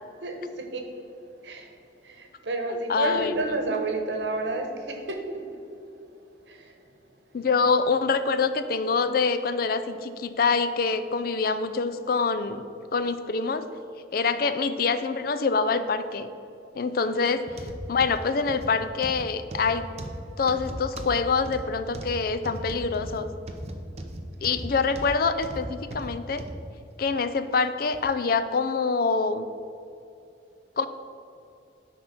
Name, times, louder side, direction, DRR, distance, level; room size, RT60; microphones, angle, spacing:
voice 1, 0.2-0.8 1.4-1.7 2.0-5.2 6.5-6.7 14.3-14.4, right 2 dB, 85° right, 3 dB, 1.1 m, -30 dB
voice 2, 2.7-3.3 7.3-12.6 12.9-13.7 14.1-16.3 16.7-17.4 17.9-19.9 20.4-23.3 24.4-26.4 27.0-29.5 30.8-30.9, left 4 dB, 55° left, 11 dB, 0.4 m, -25 dB
sound 1, 17.5-26.6 27.1-27.3 27.9-28.0, right 1 dB, 35° right, 0.6 m, -37 dB
10.0 x 3.6 x 6.0 m, 2.6 s
head